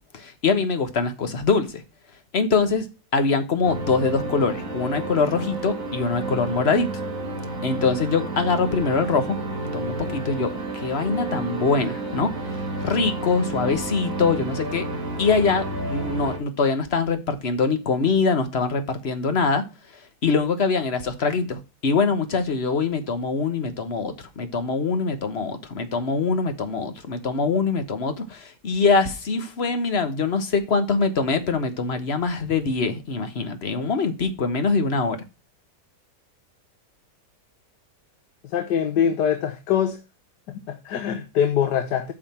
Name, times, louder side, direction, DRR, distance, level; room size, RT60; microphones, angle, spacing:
voice 1, 0.1-1.8 2.3-2.9 3.1-6.9 7.6-9.4 9.7-14.9 15.2-19.6 20.2-35.2, left 4 dB, 40° left, 1.3 m, -23 dB
sound 1, 3.6-16.4, right 2 dB, 50° right, 2.7 m, -31 dB
voice 2, 38.4-40.0 40.5-42.1, left 8 dB, 75° left, 1.5 m, -23 dB
8.8 x 5.8 x 4.3 m
omnidirectional pair, 1.9 m